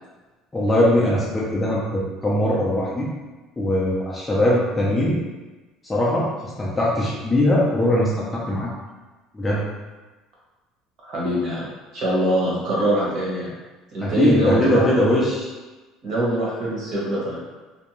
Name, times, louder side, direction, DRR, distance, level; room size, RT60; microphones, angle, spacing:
voice 1, 0.5-3.1 3.6-5.2 5.8-8.7 9.3-9.6 14.0-15.5, left 1 dB, 10° left, -6 dB, 0.4 m, -21 dB
voice 2, 11.0-11.7 11.9-13.5 13.9-14.9 16.0-17.4, right 1 dB, 45° right, -6 dB, 1.0 m, -23 dB
2.5 x 2.1 x 2.9 m, 1.2 s
cardioid pair, 160°, 0 cm